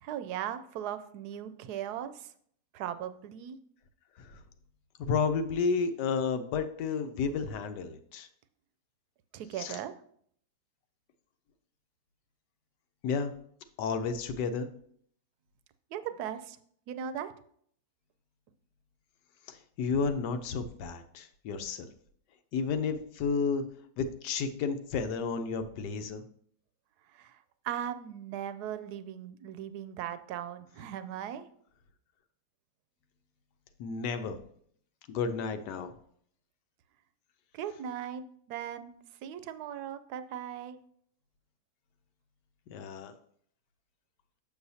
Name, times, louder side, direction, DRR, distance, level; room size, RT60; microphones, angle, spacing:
voice 1, 0.0-2.3 2.7-3.6 9.3-9.9 15.9-16.6 16.9-17.3 27.1-27.4 27.6-31.5 37.5-38.9 39.2-40.8, right 10 dB, 75° right, 11 dB, 1.1 m, -38 dB
voice 2, 5.0-8.3 9.6-9.8 13.0-13.3 13.8-14.7 19.5-21.9 22.5-23.6 24.0-26.2 33.8-34.4 35.1-35.9 42.7-43.1, left 5 dB, 85° left, 9 dB, 1.3 m, -32 dB
6.9 x 6.9 x 2.7 m, 0.63 s
omnidirectional pair, 1.8 m